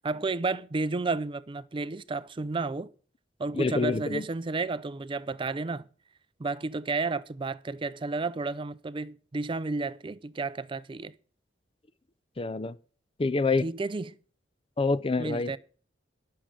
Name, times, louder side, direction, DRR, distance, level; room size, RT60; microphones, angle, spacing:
voice 1, 0.0-2.9 3.4-5.9 6.4-11.1 13.6-14.2 15.2-15.6, right 3 dB, 30° right, 0.4 m, -32 dB
voice 2, 3.5-4.2 12.4-12.8 13.2-13.7 14.8-15.6, left 3 dB, 30° left, 0.5 m, -27 dB
10.0 x 6.4 x 7.4 m
head